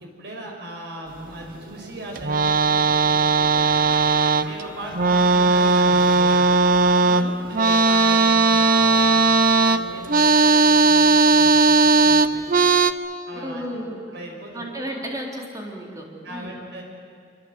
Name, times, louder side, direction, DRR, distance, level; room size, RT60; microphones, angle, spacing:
voice 1, 0.0-3.7 4.4-12.4 13.3-13.6 14.1-14.6 16.2-16.8, right 1 dB, 65° right, 1 dB, 6.0 m, -38 dB
sound 1, 2.1-4.6 4.9-12.9, right 3 dB, 50° right, 0.9 m, -17 dB
Trumpet, 3.4-9.6, left 3 dB, 65° left, 5.4 m, -40 dB
voice 2, 13.4-14.0 14.5-16.6, equal, 20° right, -1 dB, 4.0 m, -33 dB
25.0 x 24.5 x 8.0 m, 2.2 s
head